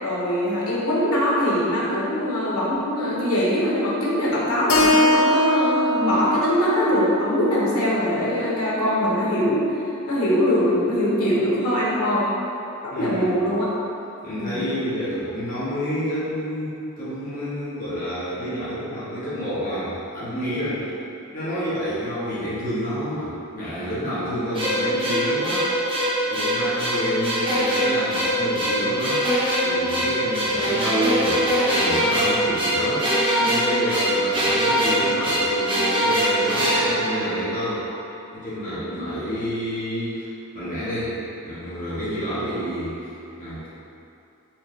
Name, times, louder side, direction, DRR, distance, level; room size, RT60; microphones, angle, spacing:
voice 1, 0.0-12.3 12.8-13.7 14.3-14.7 38.9-39.1, equal, 80° left, -6 dB, 1.0 m, -22 dB
Keyboard (musical), 4.7-8.9, left 1 dB, 65° left, 0.4 m, -23 dB
voice 2, 12.9-13.3 14.2-20.9 21.3-29.2 29.6-33.1 33.4-37.9 38.3-40.3 40.5-41.2 41.4-43.7, equal, 40° left, -12 dB, 1.1 m, -29 dB
sound 1, 24.5-37.8, equal, 25° right, 0.6 m, -22 dB
4.3 x 2.8 x 3.2 m, 2.7 s
head